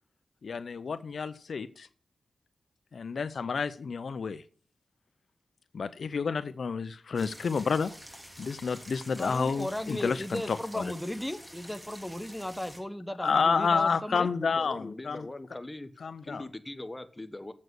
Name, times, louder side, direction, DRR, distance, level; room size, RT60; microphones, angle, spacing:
voice 1, 0.4-1.9 2.9-4.4 5.7-7.9 8.4-10.9 13.2-15.3 16.0-16.4, left 5 dB, 70° left, 13 dB, 0.6 m, -30 dB
sound 1, 7.1-12.8, equal, 10° right, 2.8 m, -48 dB
voice 2, 9.2-14.3, left 1 dB, 5° left, 10 dB, 0.8 m, -36 dB
voice 3, 14.4-15.9 16.2-17.5, left 2 dB, 20° left, 10 dB, 1.2 m, -41 dB
7.8 x 7.3 x 7.9 m, 0.42 s
cardioid pair, 65°, 0 cm